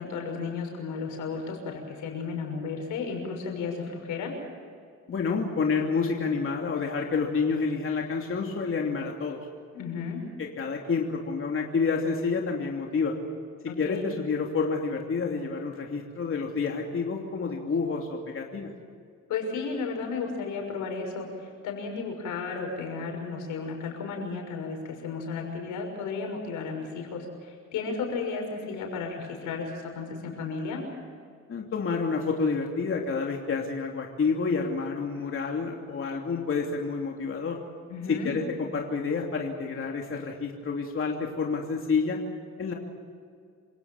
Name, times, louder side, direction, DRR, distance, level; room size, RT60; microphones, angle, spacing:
voice 1, 0.0-4.3 9.7-10.2 13.7-14.1 19.3-30.8 37.9-38.3, left 4 dB, 85° left, 2 dB, 6.4 m, -34 dB
voice 2, 5.1-9.4 10.4-13.1 13.6-18.7 31.5-37.6 38.1-42.2 42.6-42.7, left 4 dB, 45° left, 1 dB, 2.9 m, -29 dB
27.5 x 17.5 x 7.3 m, 2.2 s
cardioid pair, 90°, 30 cm